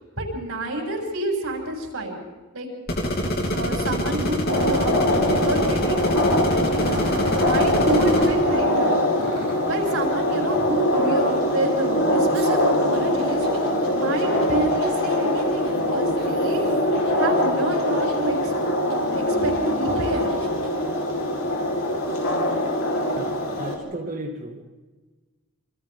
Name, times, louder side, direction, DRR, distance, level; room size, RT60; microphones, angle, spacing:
voice 1, 0.2-2.2 2.5-2.7 3.5-7.0 7.4-9.0 9.7-16.6 17.1-18.5 18.8-20.4, right 1 dB, 90° right, 0 dB, 7.1 m, -28 dB
sound 1, 2.9-8.3, equal, 45° left, 3.0 m, -25 dB
sound 2, 4.5-23.8, left 1 dB, 75° left, 4.4 m, -23 dB
Growling, 6.8-8.4 9.1-9.7 12.3-17.1 17.6-18.4 18.9-19.0 19.7-20.7, right 2 dB, 75° right, 4.6 m, -37 dB
voice 2, 23.2-24.6, right 1 dB, 40° right, 0 dB, 2.0 m, -34 dB
28.5 x 25.5 x 3.8 m, 1.3 s
head